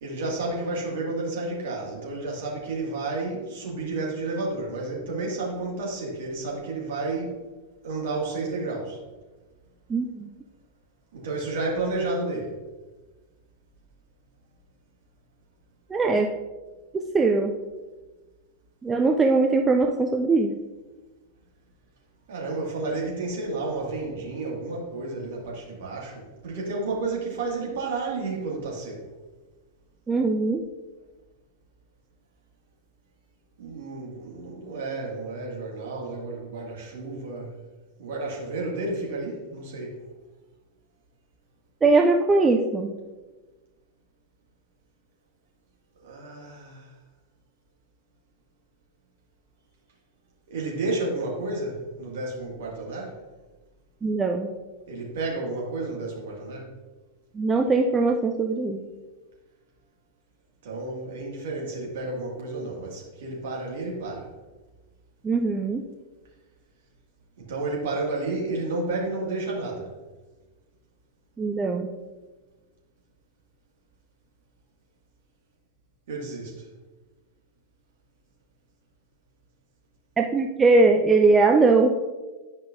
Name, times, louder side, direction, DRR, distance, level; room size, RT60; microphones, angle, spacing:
voice 1, 0.0-7.4 7.8-9.0 11.1-12.5 22.3-29.1 33.6-37.5 38.0-40.0 46.0-46.9 50.5-53.1 54.9-56.7 60.6-64.3 67.4-69.9 76.1-76.6, right 2 dB, 55° right, -2 dB, 2.0 m, -31 dB
voice 2, 9.9-10.3 15.9-16.3 16.9-17.5 18.8-20.6 30.1-30.6 41.8-43.0 54.0-54.5 57.3-58.8 65.2-65.8 71.4-71.9 80.2-81.9, right 3 dB, 15° right, 3 dB, 0.5 m, -21 dB
10.5 x 5.3 x 2.6 m, 1.2 s
figure-of-eight pair, 90°, 0 cm